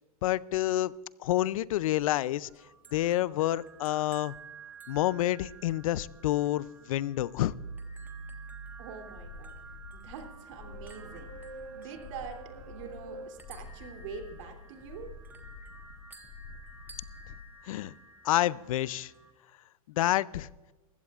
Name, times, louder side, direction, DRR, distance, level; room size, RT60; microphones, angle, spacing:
voice 1, 0.2-0.9 1.2-2.5 2.9-4.3 4.9-7.5 17.7-17.9 18.2-19.1 20.0-20.5, left 14 dB, 65° left, 20 dB, 0.5 m, -28 dB
sound 1, 2.4-19.3, right 4 dB, 10° right, 1.3 m, -53 dB
sound 2, 7.5-13.3, right 3 dB, 90° right, 1.5 m, -46 dB
voice 2, 8.8-9.5 9.9-11.3 11.7-15.1, right 5 dB, 55° right, 4 dB, 3.0 m, -44 dB
sound 3, 9.1-17.5, left 3 dB, 30° left, 2.1 m, -48 dB
21.5 x 15.5 x 2.4 m, 1.2 s
hypercardioid pair, 140°, 19 cm